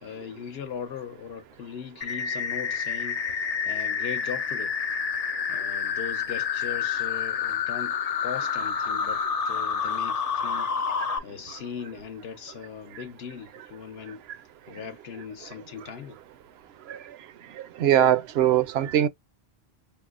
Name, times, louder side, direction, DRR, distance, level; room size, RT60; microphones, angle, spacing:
voice 1, 0.0-3.2 3.6-4.8 5.5-7.9 8.2-10.7 11.2-14.2 14.7-16.2, left 7 dB, 70° left, 1.0 m, -39 dB
sound 1, 2.0-11.2, left 6 dB, 50° left, 0.5 m, -28 dB
voice 2, 17.8-19.1, right 11 dB, 75° right, 0.8 m, -21 dB
5.4 x 2.0 x 2.4 m
omnidirectional pair, 1.1 m